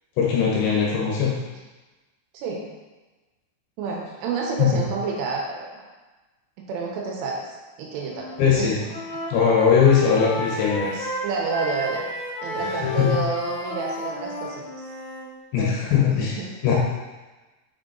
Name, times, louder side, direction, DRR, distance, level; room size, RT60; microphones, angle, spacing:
voice 1, 0.2-1.3 4.6-4.7 8.4-8.8 9.3-11.1 12.8-13.1 15.5-16.7, left 7 dB, 75° left, -3 dB, 3.0 m, -20 dB
voice 2, 3.8-5.9 6.6-7.5 7.8-8.3 8.6-8.7 11.2-12.0 12.4-14.6 15.6-15.8 16.1-16.5, right 4 dB, 80° right, -2 dB, 3.5 m, -29 dB
Wind instrument woodwind instrument, 8.0-8.4 8.7-15.3, left 1 dB, 60° left, 1.3 m, -32 dB
7.2 x 5.2 x 3.9 m, 1.2 s
omnidirectional pair, 5.8 m